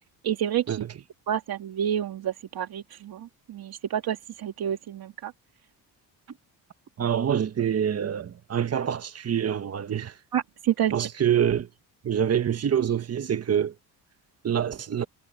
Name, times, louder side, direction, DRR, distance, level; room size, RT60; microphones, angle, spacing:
voice 1, 0.2-0.8 1.3-5.3 10.3-11.1, right 10 dB, 60° right, 2.5 m, -29 dB
voice 2, 7.0-10.1 10.9-11.7 12.0-13.7 14.4-15.1, right 9 dB, 35° right, 1.3 m, -26 dB
cardioid pair, 105°, 41 cm